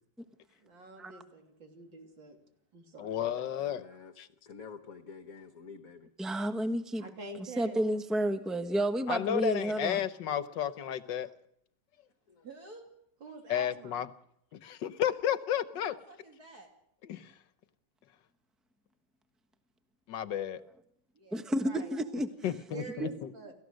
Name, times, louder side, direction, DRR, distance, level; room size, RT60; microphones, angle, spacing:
voice 1, 0.6-2.4 2.7-3.3 7.0-7.8 13.2-14.0 21.6-21.9 22.4-23.5, right 3 dB, 85° right, 3 dB, 3.9 m, -47 dB
voice 2, 3.0-3.8 4.2-4.3 9.1-11.3 13.5-14.1 14.5-15.9 17.1-17.3 20.1-20.6 22.4-23.3, left 10 dB, 75° left, 14 dB, 1.6 m, -32 dB
voice 3, 3.6-4.1 4.5-6.1 12.3-12.5, left 5 dB, 50° left, 8 dB, 1.6 m, -48 dB
voice 4, 6.2-7.0 7.4-10.0 21.3-22.3 23.0-23.1, right 1 dB, ahead, 8 dB, 0.9 m, -31 dB
voice 5, 12.4-12.9 15.7-16.7 21.1-21.5 21.8-22.1, right 3 dB, 55° right, 2 dB, 2.8 m, -52 dB
30.0 x 14.5 x 6.4 m, 0.74 s
omnidirectional pair, 2.0 m